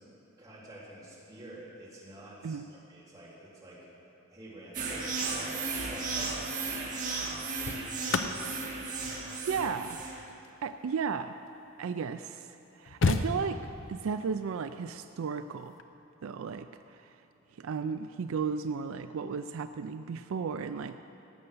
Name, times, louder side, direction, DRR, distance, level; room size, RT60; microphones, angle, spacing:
voice 1, 0.4-2.6 2.9-3.8 4.3-6.9, right 1 dB, 15° right, -8 dB, 3.6 m, -48 dB
sound 1, 4.7-10.2, right 4 dB, 40° right, 2.0 m, -35 dB
sound 2, 7.6-11.8 12.4-12.5 12.6-13.9 15.6-15.8, left 4 dB, 60° left, 0.7 m, -34 dB
voice 2, 9.5-10.1 10.6-11.4 11.8-13.6 13.9-15.8 16.2-17.2 17.5-21.0, right 6 dB, 75° right, 10 dB, 0.4 m, -34 dB
17.0 x 7.8 x 6.9 m, 2.8 s
head